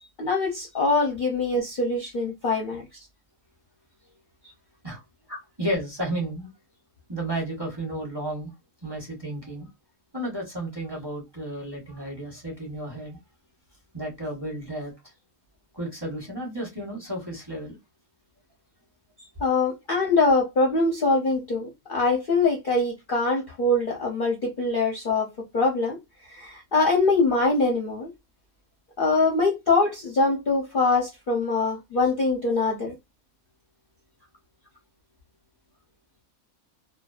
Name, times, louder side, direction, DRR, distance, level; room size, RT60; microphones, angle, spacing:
voice 1, 0.2-2.8 5.3-5.4 19.4-25.3 25.5-26.0 26.3-28.1 29.0-32.9, left 3 dB, 50° left, 0.7 m, -23 dB
voice 2, 5.6-6.5 7.1-8.5 8.8-9.7 10.1-13.2 13.9-15.1 15.7-17.8 19.2-19.3, right 1 dB, 20° right, 0.9 m, -32 dB
2.6 x 2.2 x 2.3 m
omnidirectional pair, 1.5 m